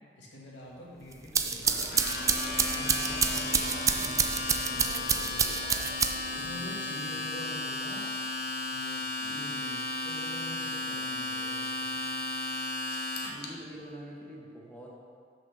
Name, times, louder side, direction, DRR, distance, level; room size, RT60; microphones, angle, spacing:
voice 1, 0.2-1.7 2.4-5.4 6.3-8.1 8.7-12.0, left 1 dB, 90° left, -4 dB, 1.7 m, -46 dB
sound 1, 1.1-6.4, right 5 dB, 20° right, 0.4 m, -28 dB
Motorcycle, 1.6-6.7, right 1 dB, 85° right, 1.0 m, -46 dB
Domestic sounds home sounds, 1.8-13.5, left 2 dB, 60° left, 0.9 m, -34 dB
voice 2, 13.3-14.9, equal, 10° left, -4 dB, 1.4 m, -46 dB
6.3 x 5.5 x 6.6 m, 2.1 s
head